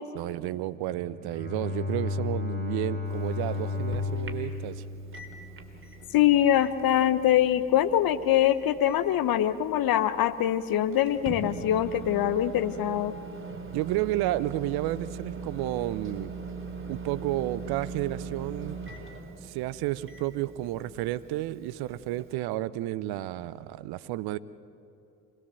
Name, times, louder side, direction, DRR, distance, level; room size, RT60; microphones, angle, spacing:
voice 1, 0.1-4.8 13.7-16.3 16.9-18.8 19.4-24.4, right 15 dB, 65° right, 17 dB, 0.9 m, -31 dB
Bowed string instrument, 0.9-6.1, left 3 dB, 25° left, 4.4 m, -33 dB
Microwave oven, 3.0-22.4, right 4 dB, 30° right, 3.5 m, -42 dB
voice 2, 6.1-13.1, left 11 dB, 60° left, 12 dB, 1.3 m, -23 dB
27.0 x 20.0 x 7.7 m, 2.6 s
hypercardioid pair, 50°, 41 cm